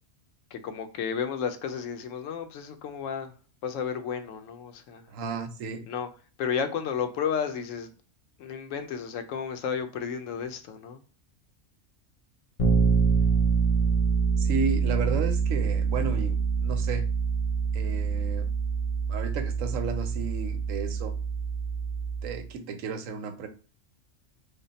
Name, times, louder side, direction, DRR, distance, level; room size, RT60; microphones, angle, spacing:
voice 1, 0.5-3.3 3.6-5.1 5.9-6.1 6.4-7.9 8.4-11.0, left 7 dB, 80° left, 1.0 m, -32 dB
voice 2, 5.1-5.9 14.4-17.0 17.7-18.5 19.1-21.1 22.2-23.5, right 5 dB, 90° right, 1.0 m, -33 dB
Bass guitar, 12.6-22.4, right 5 dB, 45° left, 0.5 m, -26 dB
3.4 x 2.1 x 3.9 m
omnidirectional pair, 1.3 m